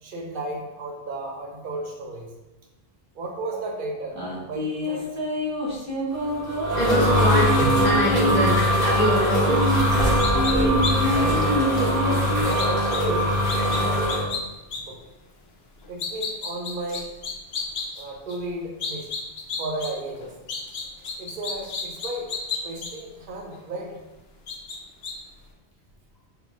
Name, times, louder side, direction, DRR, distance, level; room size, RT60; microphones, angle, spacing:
voice 1, 0.0-2.3 3.1-4.2 4.4-5.1 11.1-14.3 14.8-15.0 15.9-17.0 18.0-19.1 19.6-20.3 21.2-22.3 22.6-24.0, right 2 dB, 55° right, 0 dB, 0.9 m, -33 dB
sound 1, 4.1-8.5 9.0-12.4, equal, 15° right, 0.9 m, -27 dB
sound 2, 6.2-14.2, equal, 5° left, 1.4 m, -22 dB
voice 2, 6.8-9.7, left 1 dB, 45° left, -3 dB, 1.0 m, -24 dB
sound 3, 10.2-10.5 10.8-10.9 11.3-11.4 12.6-13.0 13.5-13.8 14.1-14.4 14.7-14.8 15.8-18.0 18.3-18.4 18.8-19.9 20.1-22.9 23.5-23.6 24.5-24.8 25.0-25.1, left 5 dB, 70° left, 0.9 m, -31 dB
3.6 x 3.2 x 3.6 m, 1.0 s
omnidirectional pair, 1.1 m